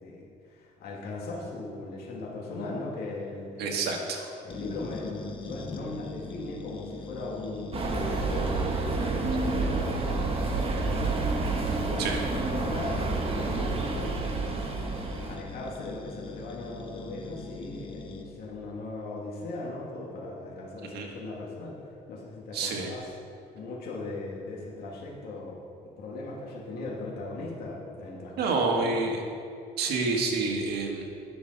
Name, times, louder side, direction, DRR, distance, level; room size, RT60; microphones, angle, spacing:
voice 1, 0.0-3.8 4.4-14.8 15.2-23.1 23.5-28.9, left 2 dB, 70° left, -4 dB, 1.9 m, -39 dB
voice 2, 3.6-4.3 12.0-12.2 20.9-21.1 22.5-22.9 28.4-29.2 29.8-31.0, right 3 dB, 75° right, 1 dB, 1.7 m, -28 dB
sound 1, 4.5-18.2, left 4 dB, 30° left, 0.9 m, -43 dB
sound 2, 7.7-15.4, right 3 dB, 35° right, 1.3 m, -29 dB
10.5 x 6.6 x 5.3 m, 2.5 s
cardioid pair, 110°, 17 cm